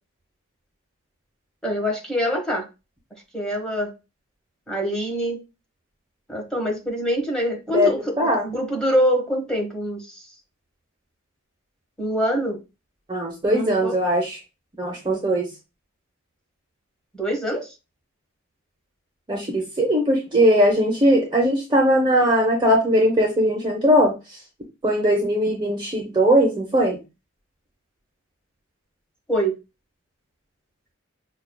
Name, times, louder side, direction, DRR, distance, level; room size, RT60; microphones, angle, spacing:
voice 1, 1.6-2.6 3.3-3.9 4.7-5.4 6.3-8.0 8.4-10.0 12.0-12.6 13.5-13.9 17.1-17.7 29.3-29.6, equal, 5° left, 0 dB, 1.1 m, -24 dB
voice 2, 7.7-8.5 13.1-14.4 14.8-15.5 19.3-24.4 24.8-27.0, equal, 20° right, -1 dB, 0.7 m, -20 dB
5.5 x 2.3 x 2.2 m, 0.27 s
head